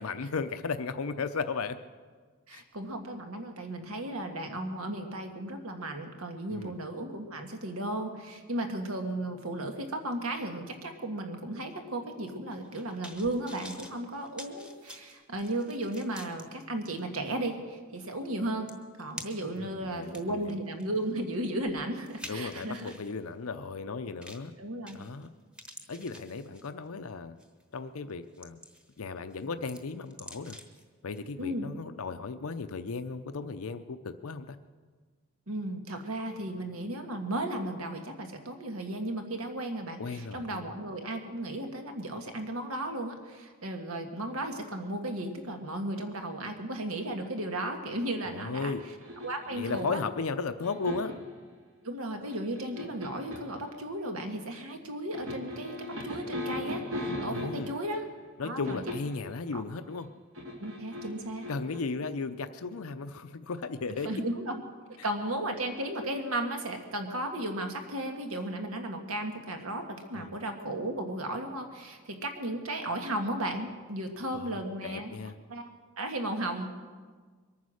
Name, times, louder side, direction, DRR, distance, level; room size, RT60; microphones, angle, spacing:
voice 1, 0.0-1.8 2.5-2.6 6.5-6.7 19.6-20.6 22.3-24.5 24.9-25.3 25.9-27.4 27.7-28.6 29.0-30.6 31.0-34.6 40.0-40.7 48.2-48.8 49.5-51.1 57.3-57.7 58.4-60.1 61.5-64.2 70.1-70.3 74.3-75.4, left 4 dB, 90° left, 9 dB, 0.6 m, -35 dB
voice 2, 2.5-18.7 19.0-22.9 24.6-25.0 31.4-31.7 35.5-48.7 49.2-50.0 51.8-58.0 58.4-58.8 59.5-59.6 60.6-61.5 64.0-64.6 65.0-75.1 75.5-75.7 76.0-76.7, right 1 dB, 85° right, 4 dB, 1.8 m, -35 dB
sound 1, 12.5-16.4 17.0-17.1 18.3-18.4 18.7-19.6 20.0-23.1 24.2-24.5 24.9-25.3 25.5-26.9 27.4-27.6 28.1-29.0 29.3-30.8 31.2-31.3, equal, 5° right, 1.0 m, -48 dB
sound 2, 49.0-50.0 50.6-51.3 52.3-53.5 55.1-57.8 58.7-59.2 60.3-61.8, left 1 dB, 70° right, 2.4 m, -37 dB
22.5 x 9.5 x 6.4 m, 1.5 s
head